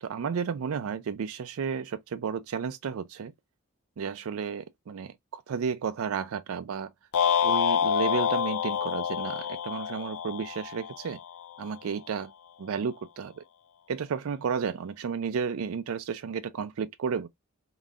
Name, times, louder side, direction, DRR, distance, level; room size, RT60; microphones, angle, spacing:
voice 1, 0.0-3.3 4.0-6.9 7.4-11.2 11.6-12.3 12.6-13.4 13.9-17.3, right 6 dB, 70° right, 0.4 m, -32 dB
sound 1, 7.1-11.5, left 8 dB, 85° left, 0.5 m, -27 dB
3.9 x 3.7 x 2.3 m
head